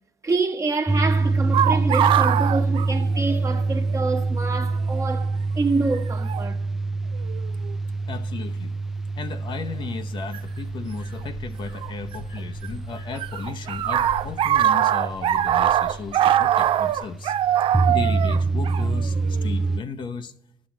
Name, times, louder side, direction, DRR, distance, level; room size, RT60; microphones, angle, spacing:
voice 1, 0.2-6.6, right 3 dB, 30° right, 1.3 m, -27 dB
sound 1, 0.9-19.8, right 3 dB, 5° right, 0.5 m, -26 dB
sound 2, 1.5-3.6 3.9-4.0 5.0-5.2 6.3-6.5 7.2-7.7 10.3-10.4 11.8-12.7 12.9-19.5, right 11 dB, 65° right, 0.4 m, -22 dB
voice 2, 8.1-8.7 9.2-17.3 17.6-20.3, left 5 dB, 55° left, 0.8 m, -35 dB
sound 3, 9.5-17.1, left 2 dB, 85° left, 1.6 m, -44 dB
11.0 x 6.2 x 7.3 m
supercardioid pair, 75°, 10 cm